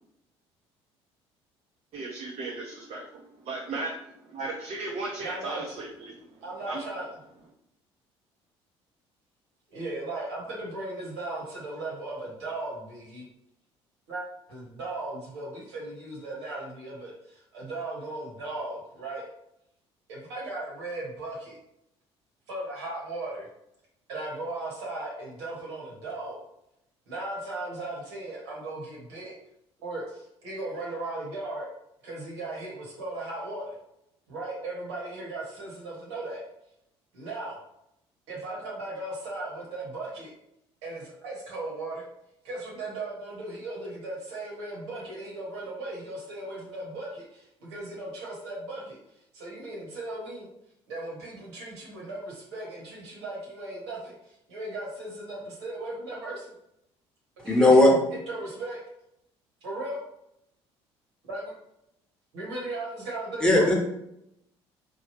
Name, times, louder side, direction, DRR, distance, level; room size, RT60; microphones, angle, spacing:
voice 1, 1.9-3.9 4.3-6.2 6.7-6.8, right 3 dB, 45° right, -2 dB, 0.6 m, -35 dB
voice 2, 5.2-5.7 6.4-7.1 9.7-13.3 14.1-19.2 20.1-21.6 22.5-23.5 24.1-26.4 27.1-29.3 29.8-31.7 32.0-33.7 34.3-36.4 37.1-37.6 38.3-40.3 40.8-42.0 42.4-49.0 49.3-50.5 50.9-56.5 57.4-58.8 59.6-60.0 61.3-61.5 62.3-63.7, right 2 dB, 80° right, -4 dB, 1.2 m, -37 dB
voice 3, 57.4-57.9 63.4-63.7, left 2 dB, 5° left, -2 dB, 1.0 m, -17 dB
3.2 x 2.2 x 3.1 m, 0.80 s
hypercardioid pair, 55°, 14 cm